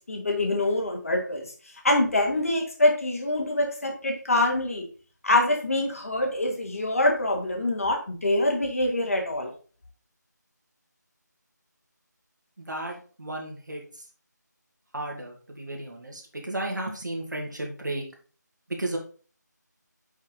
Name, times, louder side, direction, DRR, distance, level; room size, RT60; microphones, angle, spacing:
voice 1, 0.1-1.5 1.8-4.8 5.2-9.5, left 1 dB, 50° left, 1 dB, 1.7 m, -25 dB
voice 2, 12.6-13.8 14.9-18.0 18.7-19.0, right 1 dB, 80° right, 0 dB, 2.1 m, -33 dB
5.9 x 5.5 x 3.9 m, 0.39 s
figure-of-eight pair, 170°, 10 cm